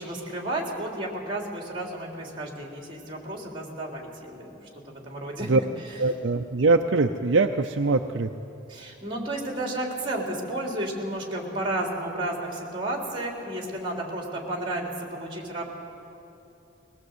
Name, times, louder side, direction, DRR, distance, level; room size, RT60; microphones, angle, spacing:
voice 1, 0.0-6.0 8.7-15.7, right 1 dB, 25° right, -1 dB, 3.6 m, -32 dB
voice 2, 6.0-8.3, right 3 dB, 65° right, 6 dB, 0.6 m, -22 dB
21.0 x 18.5 x 8.1 m, 2.9 s
head